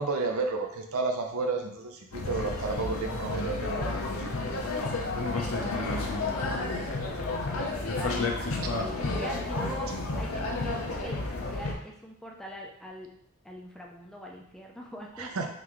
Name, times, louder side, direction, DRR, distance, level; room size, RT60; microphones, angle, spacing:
voice 1, 0.0-3.9 4.2-4.3 15.2-15.5, right 3 dB, 80° right, 4 dB, 0.6 m, -31 dB
sound 1, 2.1-11.7, left 2 dB, 75° left, 0.7 m, -31 dB
voice 2, 5.3-13.1 13.4-15.3, equal, 5° left, -1 dB, 0.4 m, -43 dB
3.9 x 3.4 x 3.0 m, 0.70 s
head